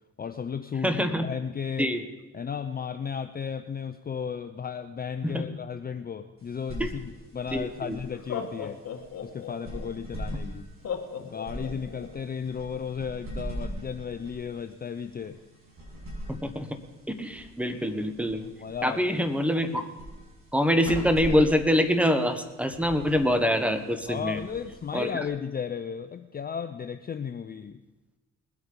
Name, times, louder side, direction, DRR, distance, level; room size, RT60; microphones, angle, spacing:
voice 1, 0.2-1.9 2.3-8.8 9.2-10.7 11.2-15.4 18.4-19.0 24.0-27.8, left 7 dB, 30° left, 9 dB, 0.6 m, -34 dB
voice 2, 0.8-1.3 1.8-2.0 5.2-5.5 6.8-6.9 7.5-8.0 16.3-16.7 17.2-18.4 18.8-19.9 20.5-24.4 24.9-25.1, equal, 5° right, 8 dB, 1.3 m, -25 dB
sound 1, 6.4-25.3, right 1 dB, 45° right, 6.2 m, -42 dB
Laughter, 7.4-7.5 8.1-9.9 10.8-12.1, left 7 dB, 55° left, 1.7 m, -35 dB
20.5 x 8.2 x 5.3 m, 1.1 s
cardioid pair, 90°, 30 cm